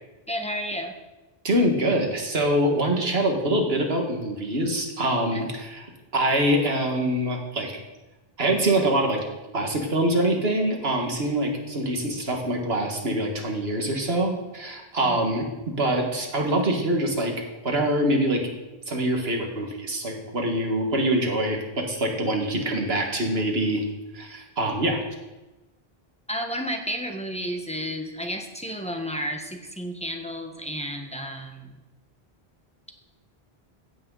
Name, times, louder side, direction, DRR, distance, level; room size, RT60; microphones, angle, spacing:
voice 1, 0.3-0.9 5.2-5.5 15.0-15.2 26.3-31.7, equal, 5° left, 3 dB, 1.2 m, -32 dB
voice 2, 1.4-5.8 6.1-7.7 8.4-9.2 9.5-18.5 18.9-23.8 24.1-25.0, right 1 dB, 80° right, 2 dB, 2.1 m, -24 dB
15.5 x 8.8 x 4.0 m, 1.1 s
omnidirectional pair, 1.0 m